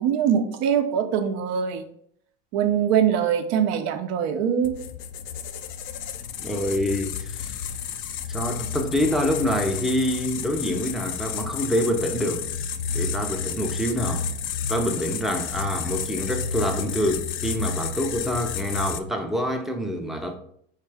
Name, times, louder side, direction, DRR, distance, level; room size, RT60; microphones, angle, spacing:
voice 1, 0.0-1.8 2.5-4.8, right 8 dB, 60° right, 0.7 m, -23 dB
sound 1, 4.6-19.0, left 6 dB, 40° left, 0.4 m, -31 dB
voice 2, 6.4-7.5 8.3-12.4 12.9-14.3 14.7-20.3, equal, ahead, 0.6 m, -26 dB
4.6 x 3.3 x 3.4 m
supercardioid pair, 110°, 31 cm